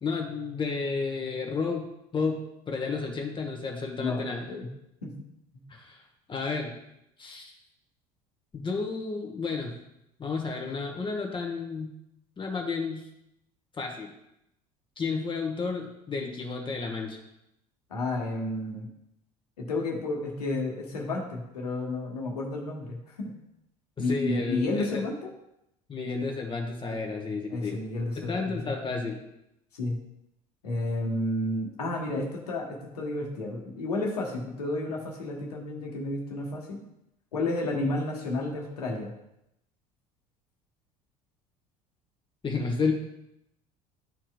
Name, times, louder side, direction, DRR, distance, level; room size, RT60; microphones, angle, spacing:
voice 1, 0.0-1.9 2.1-2.4 2.7-4.5 5.7-6.0 6.3-6.7 7.2-7.5 8.5-9.8 10.2-11.9 12.4-13.1 13.8-14.1 15.0-17.2 24.0-25.0 25.9-27.8 28.2-29.2 42.4-42.9, left 4 dB, 25° left, 1 dB, 1.2 m, -31 dB
voice 2, 17.9-18.9 19.6-23.3 24.0-25.3 27.5-28.7 29.7-30.0 30.6-36.8 37.3-39.1, left 2 dB, 75° left, 0 dB, 1.3 m, -31 dB
12.0 x 4.4 x 2.4 m, 0.82 s
figure-of-eight pair, 65°, 20 cm